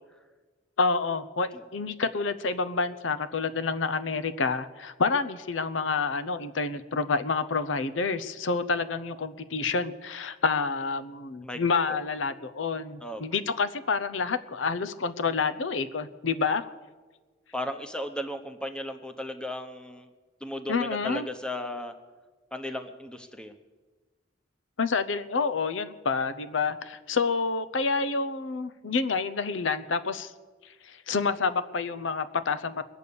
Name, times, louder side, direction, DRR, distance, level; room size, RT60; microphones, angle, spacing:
voice 1, 0.8-16.7 20.7-21.3 24.8-30.3 30.8-32.8, left 4 dB, 85° left, 12 dB, 0.7 m, -28 dB
voice 2, 17.5-20.1 20.4-21.9 22.5-23.5, left 1 dB, 5° left, 7 dB, 0.9 m, -35 dB
22.0 x 8.2 x 6.9 m, 1.3 s
head